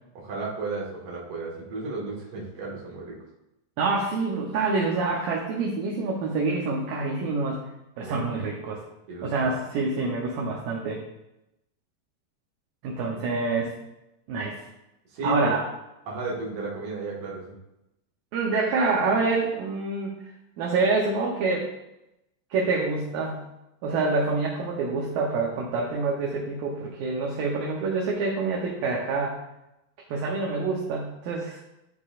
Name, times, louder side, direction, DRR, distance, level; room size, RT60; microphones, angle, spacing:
voice 1, 0.1-3.2 8.0-8.4 9.1-9.3 15.1-15.6 16.1-17.5, right 2 dB, 50° right, -4 dB, 2.4 m, -34 dB
voice 2, 3.8-7.6 8.0-8.8 9.2-11.0 12.8-13.7 14.3-14.7 15.2-15.6 18.3-20.3 20.6-21.7 22.5-23.5 23.8-29.4 30.1-31.7, right 3 dB, 75° right, -2 dB, 2.3 m, -26 dB
12.0 x 4.6 x 2.4 m, 0.90 s
omnidirectional pair, 4.6 m